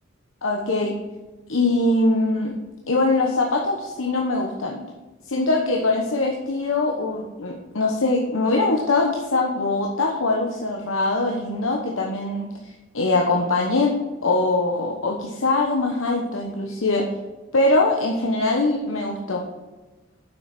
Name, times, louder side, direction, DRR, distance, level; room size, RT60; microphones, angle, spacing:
voice 1, 0.4-0.9 1.5-2.5 2.9-4.8 5.3-12.5 12.9-13.9 14.2-17.0 17.5-19.4, left 2 dB, 85° left, 0 dB, 1.1 m, -22 dB
7.8 x 6.1 x 6.0 m, 1.2 s
head